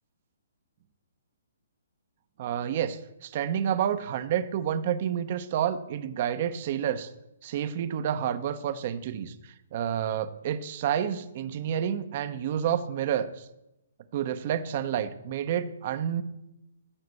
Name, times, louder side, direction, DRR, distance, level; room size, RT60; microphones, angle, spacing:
voice 1, 2.4-7.1 7.4-13.5 14.1-16.2, right 9 dB, 45° right, 11 dB, 0.8 m, -29 dB
14.5 x 5.9 x 6.7 m, 0.91 s
hypercardioid pair, 140°, 0 cm